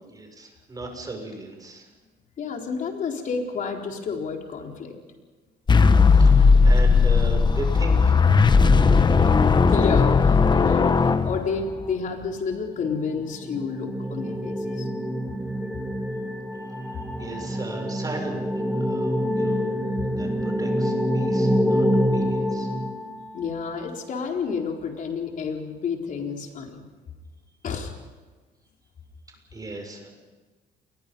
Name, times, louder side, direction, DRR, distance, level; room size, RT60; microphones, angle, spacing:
voice 1, 0.1-1.9 6.0-9.3 16.5-19.6 20.2-22.7 29.3-30.1, right 2 dB, 20° right, 3 dB, 6.9 m, -37 dB
voice 2, 2.4-4.9 9.7-10.9 11.2-14.9 23.3-26.8 27.6-27.9, left 5 dB, 50° left, 2 dB, 4.2 m, -30 dB
sound 1, 5.7-11.9, left 4 dB, 25° left, 1.1 m, -17 dB
sound 2, 12.9-23.6, equal, 5° right, 2.4 m, -26 dB
28.5 x 22.5 x 5.5 m, 1.3 s
cardioid pair, 110°, 17 cm